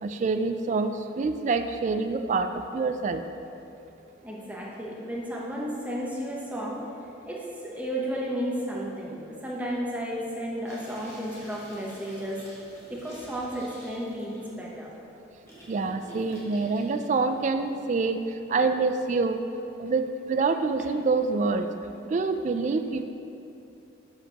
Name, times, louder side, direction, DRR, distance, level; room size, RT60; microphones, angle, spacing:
voice 1, 0.0-2.5 2.7-3.2 15.7-18.2 18.5-19.4 19.8-21.7 22.1-23.0, right 4 dB, 40° right, 8 dB, 0.3 m, -26 dB
voice 2, 4.2-6.8 7.3-12.4 12.9-14.9, equal, 10° right, -4 dB, 0.8 m, -33 dB
sound 1, 10.7-18.3, equal, 15° left, 1.2 m, -49 dB
7.8 x 6.6 x 2.9 m, 2.8 s
head